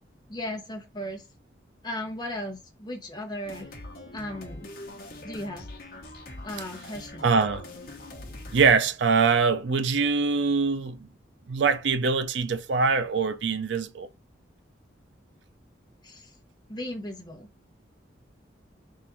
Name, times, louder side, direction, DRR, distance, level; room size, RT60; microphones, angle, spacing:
voice 1, 0.3-1.3 1.8-3.7 4.1-4.7 5.2-5.6 6.4-7.4 16.0-16.3 16.7-17.5, left 1 dB, 25° left, 0.8 m, -36 dB
sound 1, 3.4-8.8, left 2 dB, 50° left, 1.0 m, -42 dB
voice 2, 7.2-7.7 8.5-11.1 11.5-14.1, right 5 dB, 75° right, 0.5 m, -23 dB
3.7 x 2.5 x 4.3 m
head